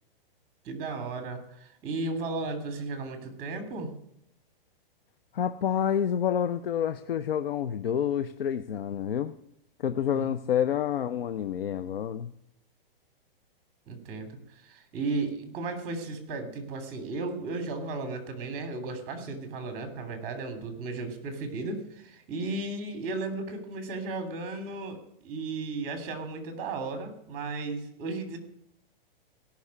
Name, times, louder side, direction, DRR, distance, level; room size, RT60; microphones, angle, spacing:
voice 1, 0.6-3.9 10.1-10.3 13.9-28.4, right 3 dB, 30° right, 8 dB, 3.2 m, -35 dB
voice 2, 5.3-9.3 9.8-12.3, left 9 dB, 75° left, 12 dB, 0.9 m, -28 dB
16.5 x 6.4 x 9.7 m, 0.77 s
hypercardioid pair, 150°, 29 cm